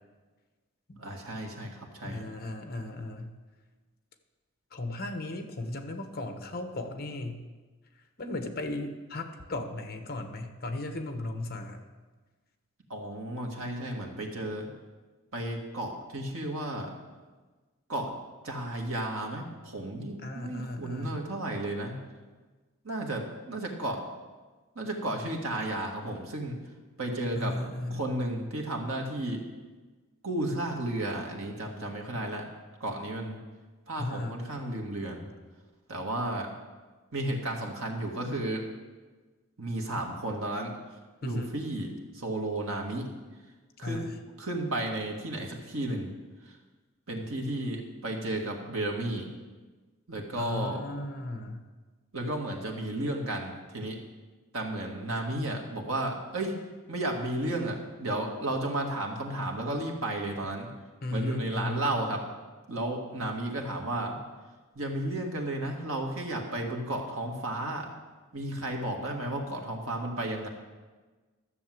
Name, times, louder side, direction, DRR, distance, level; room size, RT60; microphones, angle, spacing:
voice 1, 1.0-2.2 12.9-14.7 15.3-17.0 17.9-18.2 18.4-22.0 22.8-24.0 24.8-26.6 27.0-27.6 27.9-29.4 30.2-32.4 32.8-33.4 33.9-35.3 35.9-36.5 37.1-38.6 39.6-40.7 41.2-43.1 43.8-44.0 44.4-46.1 47.1-49.3 50.1-50.8 52.1-54.0 54.5-56.5 56.9-60.7 61.1-62.2 62.7-64.2 64.8-67.9 68.3-70.5, right 1 dB, 70° right, 1 dB, 2.0 m, -33 dB
voice 2, 2.0-3.4 4.7-7.4 8.2-11.8 20.2-21.2 27.3-28.1 34.0-34.5 41.2-41.5 43.8-44.1 50.4-51.6 61.0-61.9, left 2 dB, 45° left, 6 dB, 1.1 m, -36 dB
13.0 x 6.9 x 7.8 m, 1.3 s
head